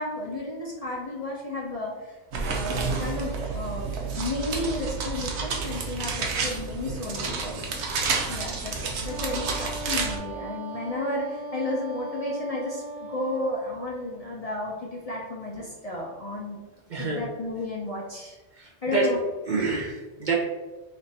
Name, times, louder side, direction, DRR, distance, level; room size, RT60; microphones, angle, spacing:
voice 1, 0.0-2.2 2.4-3.9 4.2-7.8 8.3-16.6 17.0-18.4 18.8-19.2, left 1 dB, 45° left, -3 dB, 0.5 m, -32 dB
sound 1, 2.3-10.2, right 4 dB, 80° right, 0.9 m, -30 dB
Wind instrument woodwind instrument, 9.0-13.7, right 1 dB, 90° left, 1.0 m, -39 dB
voice 2, 16.9-17.2 18.5-19.1 19.5-20.3, right 4 dB, 55° right, -1 dB, 0.6 m, -27 dB
3.1 x 2.6 x 4.1 m, 1.2 s
omnidirectional pair, 1.1 m